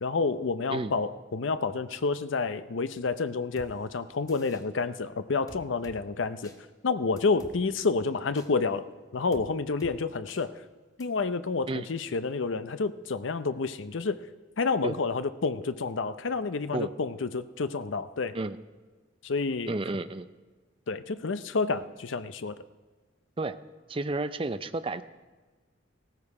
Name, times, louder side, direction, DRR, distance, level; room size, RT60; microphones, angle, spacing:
voice 1, 0.0-6.5 6.8-10.6 11.0-14.2 14.6-18.4 19.2-19.7 20.9-22.6, left 4 dB, 75° left, 12 dB, 0.6 m, -29 dB
sound 1, 3.6-3.7 4.3-4.6 5.5-6.0 6.4-6.6 7.2-7.5 8.4-8.5 9.3-9.5 9.8-9.9 10.3-10.4 11.0-11.1, left 1 dB, 20° left, 1.0 m, -48 dB
voice 2, 19.7-20.3 23.4-23.6 23.9-25.0, right 2 dB, 25° right, 11 dB, 0.4 m, -31 dB
16.0 x 14.0 x 4.8 m, 1.3 s
head